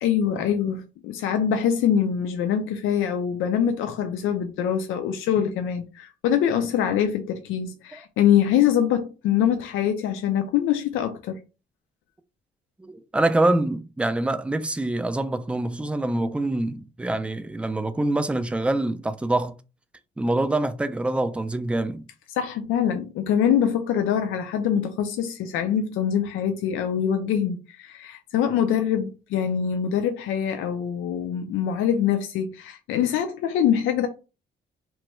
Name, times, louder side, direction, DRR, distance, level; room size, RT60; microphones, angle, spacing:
voice 1, 0.0-11.4 22.4-34.1, left 9 dB, 85° left, 0.4 m, -24 dB
voice 2, 12.8-19.6 20.2-22.0, right 2 dB, 5° right, 0.3 m, -25 dB
3.0 x 2.2 x 3.1 m
cardioid pair, 90°, 20 cm